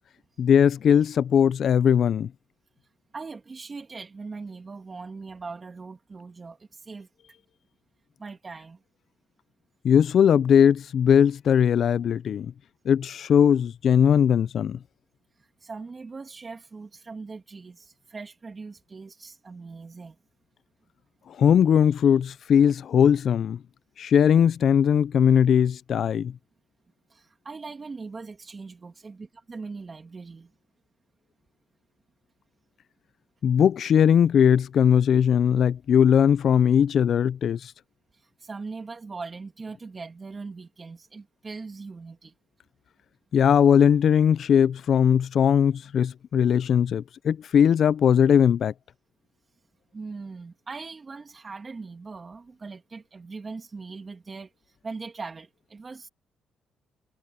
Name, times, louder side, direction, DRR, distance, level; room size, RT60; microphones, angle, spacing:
voice 1, 0.4-2.3 9.8-12.5 12.9-14.8 21.4-23.6 24.0-26.3 33.4-37.6 43.3-48.7, left 8 dB, 60° left, 0.5 m, -19 dB
voice 2, 3.1-7.1 8.2-8.8 15.4-20.2 27.1-30.5 38.1-42.3 49.9-56.1, right 4 dB, 30° right, 2.6 m, -40 dB
cardioid pair, 90°, 0 cm